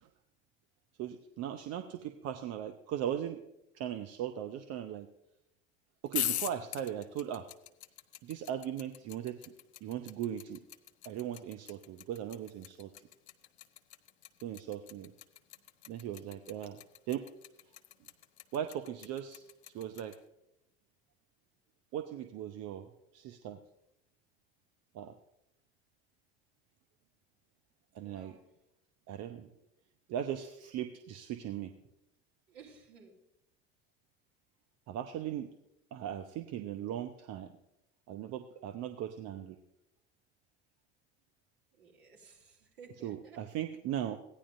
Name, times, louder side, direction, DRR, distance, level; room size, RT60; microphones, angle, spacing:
voice 1, 1.0-3.4 3.7-5.1 6.0-7.5 8.2-9.5 9.8-10.6 11.0-12.9 14.4-15.1 15.9-16.8 17.1-17.3 18.5-20.2 21.9-22.9 23.1-23.6 24.9-25.2 27.9-28.4 29.1-29.5 30.1-31.7 34.9-35.5 35.9-37.6 38.1-39.6 43.0-44.2, right 10 dB, 50° right, 7 dB, 0.8 m, -38 dB
sound 1, 6.1-20.2, left 12 dB, 75° left, 0.6 m, -41 dB
voice 2, 27.9-28.5 32.5-33.2 41.7-43.4, right 5 dB, 65° right, -2 dB, 3.2 m, -56 dB
16.0 x 10.0 x 2.6 m, 0.85 s
figure-of-eight pair, 65°, 33 cm